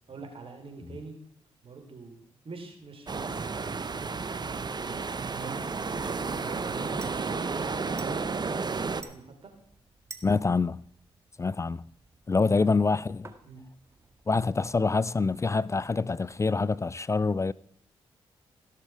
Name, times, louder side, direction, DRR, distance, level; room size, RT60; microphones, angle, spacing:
voice 1, 0.1-1.2 1.6-5.1 5.3-8.2 8.7-9.5 12.5-12.6 13.4-13.6, right 3 dB, 55° right, 3.6 m, -44 dB
sound 1, 3.1-9.0, right 4 dB, 40° right, 0.9 m, -32 dB
sound 2, 4.1-16.9, right 3 dB, 25° right, 1.8 m, -55 dB
voice 2, 10.2-10.8 11.4-11.8 12.3-13.3 14.3-17.5, left 4 dB, 25° left, 0.4 m, -26 dB
16.5 x 6.6 x 4.9 m
supercardioid pair, 50°, 11 cm